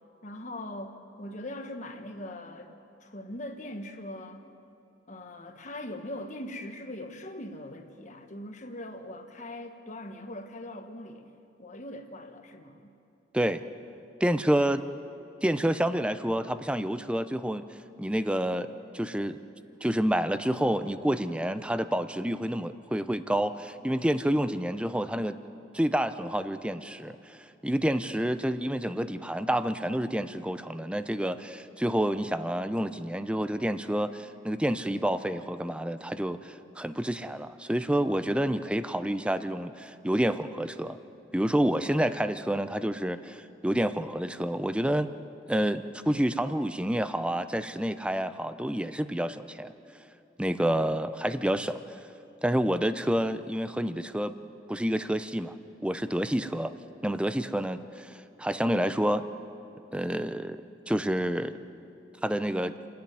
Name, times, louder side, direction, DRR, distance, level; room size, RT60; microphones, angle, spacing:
voice 1, 0.2-2.7 3.0-4.4 5.1-11.3 11.6-13.0, left 1 dB, 40° left, 6 dB, 1.4 m, -41 dB
voice 2, 14.2-14.8 15.4-17.6 18.0-18.7 18.9-19.4 19.8-25.4 25.7-27.4 27.6-41.0 41.3-45.1 45.5-49.7 50.4-52.0 52.4-54.3 54.7-55.5 55.8-56.7 57.0-59.2 59.9-61.6 62.2-62.8, right 1 dB, 5° right, 11 dB, 0.6 m, -28 dB
29.0 x 10.5 x 9.5 m, 2.7 s
head